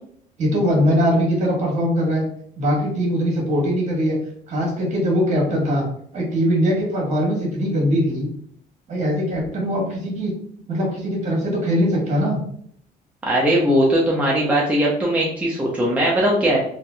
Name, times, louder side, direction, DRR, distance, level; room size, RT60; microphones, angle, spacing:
voice 1, 0.4-2.2 2.6-4.2 4.5-5.8 6.1-8.3 8.9-10.3 10.7-12.4, equal, 45° right, -2 dB, 1.4 m, -21 dB
voice 2, 13.2-16.6, right 1 dB, 10° right, -4 dB, 0.6 m, -19 dB
3.2 x 2.6 x 2.2 m, 0.65 s
cardioid pair, 110°, 17 cm